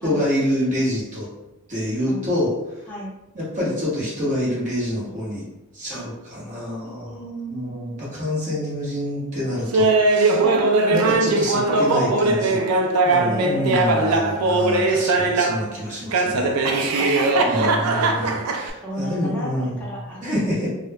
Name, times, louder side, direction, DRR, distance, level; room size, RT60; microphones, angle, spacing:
voice 1, 0.0-1.3 1.7-2.5 3.3-5.4 5.7-7.2 7.5-10.4 10.9-12.6 13.0-16.6 16.9-19.8 20.2-20.7, left 1 dB, 35° right, -7 dB, 1.0 m, -27 dB
voice 2, 6.8-8.0 10.3-10.6 12.5-14.7 18.8-20.5, equal, 5° left, -7 dB, 0.7 m, -34 dB
Laughter, 9.7-15.7 16.1-18.7, right 2 dB, 80° right, 0.4 m, -20 dB
2.2 x 2.0 x 3.4 m, 0.95 s
head